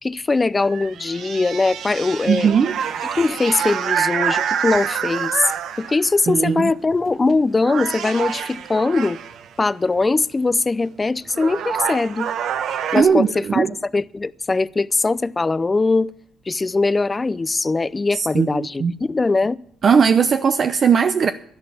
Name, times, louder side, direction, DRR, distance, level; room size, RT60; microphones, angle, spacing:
voice 1, 0.0-2.5 3.2-5.5 5.8-9.2 9.6-12.3 12.9-13.3 13.5-13.6 13.9-16.1 16.5-19.6, left 3 dB, 25° left, 0.5 m, -21 dB
sound 1, 0.6-6.2 7.1-7.3 7.6-9.5 10.9-11.0 11.3-13.0, right 8 dB, 75° right, 0.9 m, -26 dB
voice 2, 2.3-2.8 6.3-6.7 12.9-13.7 18.1-18.9 19.8-21.3, right 6 dB, 50° right, 0.7 m, -18 dB
11.5 x 11.5 x 7.1 m
cardioid pair, 90°, 0 cm